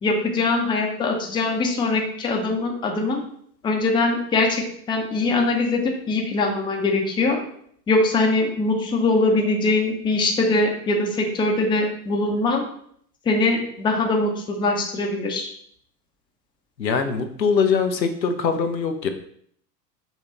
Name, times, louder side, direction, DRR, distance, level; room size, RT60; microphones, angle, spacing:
voice 1, 0.0-3.2 3.6-7.4 7.9-12.6 13.2-15.5, left 2 dB, 10° left, 1 dB, 0.6 m, -22 dB
voice 2, 16.8-19.1, left 5 dB, 90° left, 6 dB, 0.6 m, -22 dB
5.6 x 2.3 x 3.9 m, 0.65 s
figure-of-eight pair, 90°, 50 cm